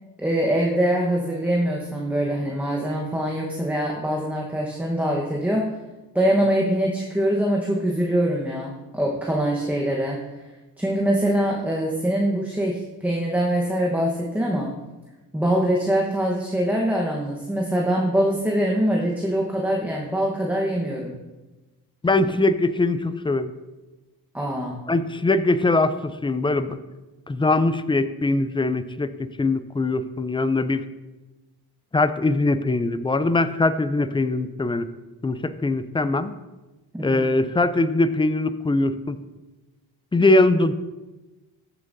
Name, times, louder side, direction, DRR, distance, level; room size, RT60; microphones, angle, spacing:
voice 1, 0.2-5.7 6.1-10.2 10.8-14.7 15.3-21.1 24.3-24.8 36.9-37.2, right 1 dB, 5° right, -2 dB, 1.1 m, -23 dB
voice 2, 22.0-23.5 24.9-26.8 27.3-30.8 31.9-34.9 35.2-36.3 37.0-39.2 40.1-40.7, left 2 dB, 15° left, 12 dB, 0.4 m, -22 dB
14.5 x 7.1 x 2.7 m, 1.1 s
cardioid pair, 100°, 37 cm